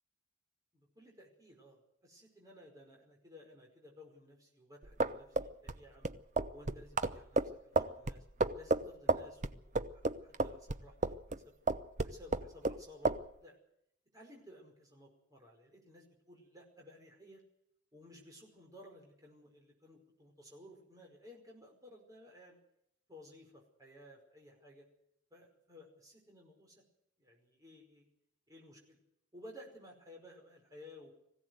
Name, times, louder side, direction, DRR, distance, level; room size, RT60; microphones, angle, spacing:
voice 1, 0.7-6.1 6.5-8.2 8.5-11.4 12.0-13.1 13.4-13.6 14.1-17.4 17.9-22.6 23.1-24.9 25.3-26.8 27.2-28.1 28.5-29.0 29.3-31.1, left 1 dB, 20° right, 0 dB, 5.2 m, -56 dB
sound 1, 4.8-11.4 11.7-12.8 13.1-13.2, right 2 dB, 40° right, 0.7 m, -32 dB
20.5 x 16.0 x 8.0 m, 0.76 s
head